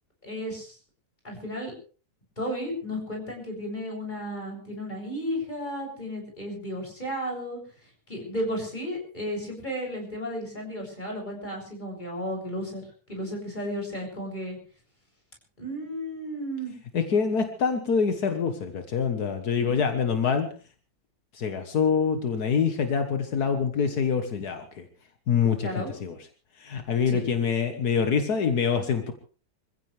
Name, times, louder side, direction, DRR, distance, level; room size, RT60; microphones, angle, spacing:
voice 1, 0.2-0.8 1.2-1.7 2.4-7.6 8.1-12.8 13.1-14.6 15.6-16.7 19.5-19.9 25.6-25.9 27.1-27.2, equal, 30° left, 0 dB, 7.8 m, -33 dB
voice 2, 16.9-20.5 21.3-24.9 25.3-26.2 26.6-29.1, left 6 dB, 80° left, 7 dB, 1.9 m, -25 dB
26.5 x 15.5 x 3.4 m, 0.39 s
omnidirectional pair, 1.6 m